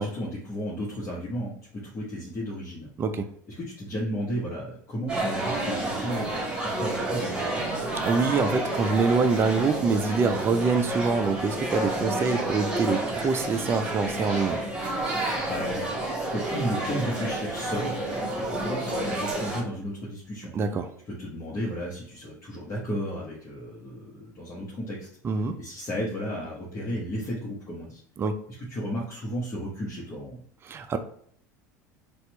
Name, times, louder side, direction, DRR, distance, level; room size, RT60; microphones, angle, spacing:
voice 1, 0.0-2.9 3.6-7.7 15.1-16.0 16.3-20.5 21.1-25.1 25.6-28.0 28.7-30.4, equal, 30° left, -6 dB, 1.2 m, -33 dB
voice 2, 3.0-3.3 8.0-14.6 20.5-20.9 25.2-25.6 28.2-28.4 30.6-31.0, right 4 dB, 25° right, 7 dB, 0.4 m, -25 dB
sound 1, 5.1-19.6, right 2 dB, 10° right, 1.3 m, -30 dB
4.3 x 2.4 x 3.0 m, 0.62 s
figure-of-eight pair, 75°, 10 cm